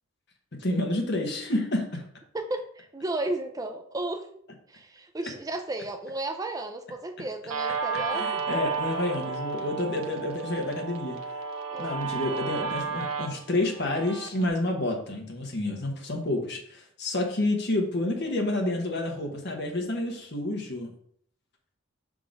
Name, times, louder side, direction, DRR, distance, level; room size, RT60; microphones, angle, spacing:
voice 1, 0.6-2.0 8.1-11.2 11.8-20.9, left 1 dB, 50° left, 2 dB, 1.1 m, -29 dB
voice 2, 2.3-4.3 4.7-8.4 11.7-11.9 18.2-18.4, right 2 dB, 15° right, 5 dB, 0.4 m, -34 dB
Guitar, 7.5-14.5, right 5 dB, 90° right, 0.8 m, -32 dB
5.8 x 3.7 x 5.1 m, 0.65 s
head